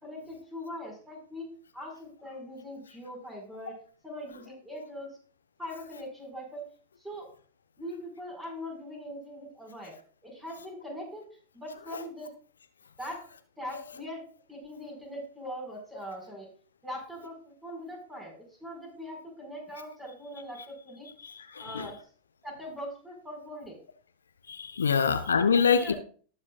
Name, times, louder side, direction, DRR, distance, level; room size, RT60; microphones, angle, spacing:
voice 1, 0.0-3.8 4.0-5.2 5.6-6.7 7.0-7.3 7.8-10.0 10.2-11.3 11.5-12.3 13.0-13.2 13.6-16.5 16.8-21.1 21.6-22.0 22.4-23.8 25.6-26.0, equal, 10° right, 0 dB, 4.7 m, -41 dB
voice 2, 21.2-21.9 24.5-25.9, left 6 dB, 70° left, 9 dB, 0.8 m, -25 dB
18.5 x 6.5 x 2.3 m, 0.41 s
figure-of-eight pair, 90°, 0 cm